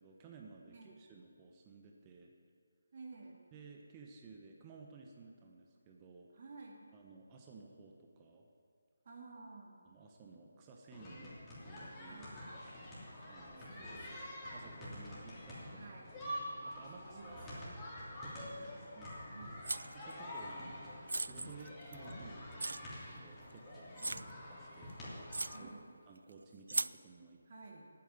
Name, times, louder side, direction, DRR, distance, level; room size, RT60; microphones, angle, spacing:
voice 1, 0.0-2.3 3.5-6.3 6.9-8.5 9.8-11.3 11.6-12.2 13.3-13.8 14.5-16.2 16.7-17.7 18.2-19.2 19.9-20.8 21.2-24.2 24.5-24.9 25.6-25.7 26.1-27.4, right 4 dB, 20° right, 1 dB, 1.0 m, -56 dB
voice 2, 2.9-3.4 6.3-6.9 9.0-9.8 12.1-12.4 13.6-14.7 15.7-16.1 17.0-17.8 18.6-18.8 19.3-19.7 20.2-20.5 24.0-24.3 25.5-25.9 27.5-27.9, right 3 dB, 45° right, 0 dB, 2.5 m, -53 dB
sound 1, 10.9-25.6, left 1 dB, 15° left, 3.0 m, -47 dB
sound 2, 19.6-20.1 21.1-22.1 22.6-22.8 23.4-23.5 24.0-24.3 24.9-25.0 25.3-25.6 26.7-27.0, right 3 dB, 75° right, 0.3 m, -37 dB
9.2 x 8.8 x 9.1 m, 2.1 s
figure-of-eight pair, 155°, 0 cm